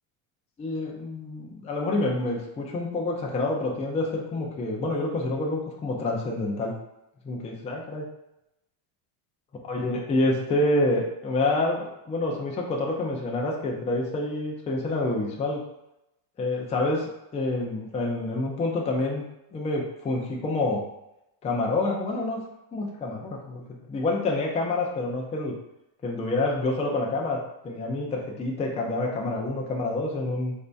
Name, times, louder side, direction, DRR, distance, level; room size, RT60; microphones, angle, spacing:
voice 1, 0.6-6.7 7.2-8.0 9.7-15.6 16.4-19.2 19.5-20.8 21.4-22.4 22.7-23.6 23.9-25.5 26.0-30.5, left 2 dB, 15° left, -1 dB, 0.4 m, -27 dB
4.0 x 2.7 x 3.3 m, 0.88 s
cardioid pair, 135°, 47 cm